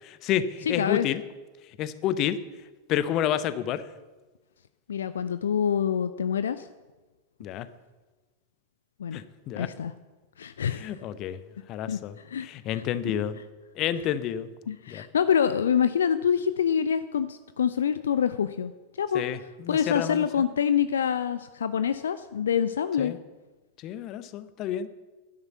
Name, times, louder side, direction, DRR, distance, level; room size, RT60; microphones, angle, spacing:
voice 1, 0.0-1.2 1.8-2.4 2.9-3.8 7.4-7.7 9.1-9.7 10.7-11.4 11.7-13.3 13.8-14.5 14.9-15.1 19.1-20.3 23.0-23.2 23.8-24.9, left 10 dB, 35° left, 14 dB, 0.8 m, -30 dB
voice 2, 0.7-1.1 4.9-6.7 9.0-9.2 9.6-9.9 10.4-10.9 11.9-12.0 12.2-12.5 12.7-12.8 14.7-18.7 19.0-19.2 19.7-23.1, left 8 dB, 65° left, 13 dB, 0.5 m, -26 dB
11.5 x 10.5 x 7.1 m, 1.2 s
figure-of-eight pair, 90°, 0 cm